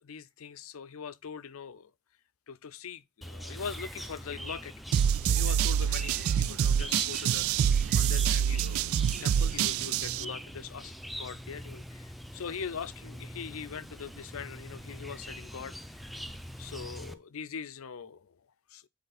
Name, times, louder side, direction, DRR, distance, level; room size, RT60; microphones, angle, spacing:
voice 1, 0.0-1.9 2.5-4.7 5.2-8.9 9.2-10.9 11.2-15.8 16.6-18.4 18.7-18.8, left 6 dB, 70° left, 0.5 m, -42 dB
Chirp tweet, 3.2-17.1, equal, ahead, 0.6 m, -43 dB
sound 1, 4.9-10.2, right 8 dB, 70° right, 0.4 m, -26 dB
8.0 x 4.2 x 4.0 m
head